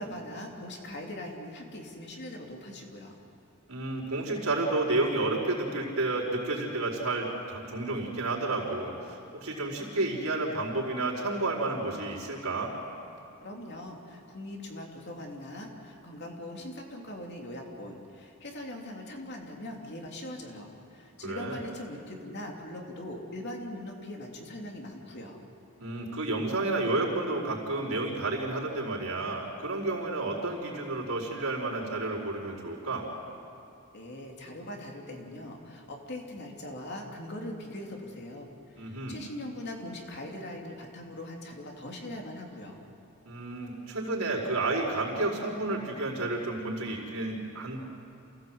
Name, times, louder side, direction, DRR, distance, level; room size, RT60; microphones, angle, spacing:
voice 1, 0.0-3.1 13.4-25.4 33.9-42.8, left 1 dB, 50° left, 1 dB, 3.0 m, -41 dB
voice 2, 3.7-12.7 21.2-21.6 25.8-33.1 38.8-39.2 43.2-47.8, right 2 dB, 75° right, -3 dB, 4.7 m, -31 dB
28.0 x 16.5 x 7.9 m, 2.6 s
head